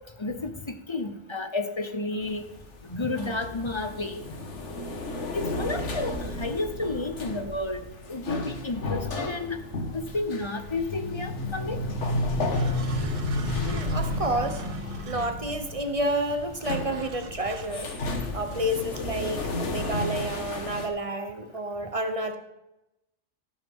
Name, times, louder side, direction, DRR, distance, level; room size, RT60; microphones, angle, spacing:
voice 1, 0.2-2.4 2.8-4.2 5.3-9.6 9.9-11.8, left 2 dB, 25° left, 8 dB, 0.8 m, -31 dB
sound 1, 2.2-20.9, left 2 dB, 80° left, 1.7 m, -32 dB
sound 2, 12.5-15.8 16.7-17.7, right 6 dB, 60° right, 0.3 m, -41 dB
voice 2, 13.5-14.6 15.1-17.9 18.3-22.4, right 1 dB, 30° right, 6 dB, 0.9 m, -30 dB
13.5 x 12.5 x 3.7 m, 0.93 s
omnidirectional pair, 1.2 m